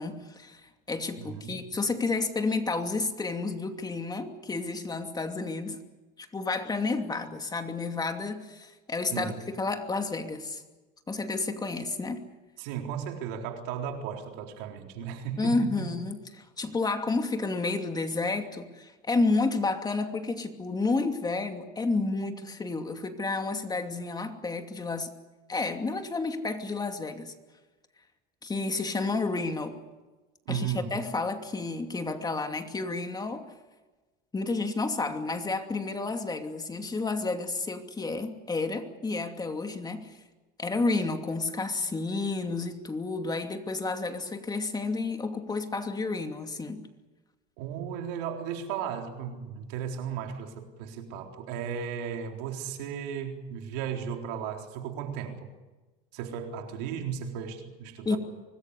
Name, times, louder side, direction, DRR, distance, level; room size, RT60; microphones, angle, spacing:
voice 1, 0.0-5.8 6.2-10.6 11.1-12.2 15.4-25.1 25.5-27.3 28.4-29.8 30.5-33.5 34.3-40.1 40.6-46.8 58.0-58.2, left 3 dB, 20° left, 2.7 m, -31 dB
voice 2, 1.2-1.6 9.1-9.4 12.6-16.0 30.5-30.9 47.6-55.5 56.1-58.2, right 8 dB, 80° right, 4.0 m, -35 dB
25.0 x 20.0 x 8.3 m
supercardioid pair, 110°, 21 cm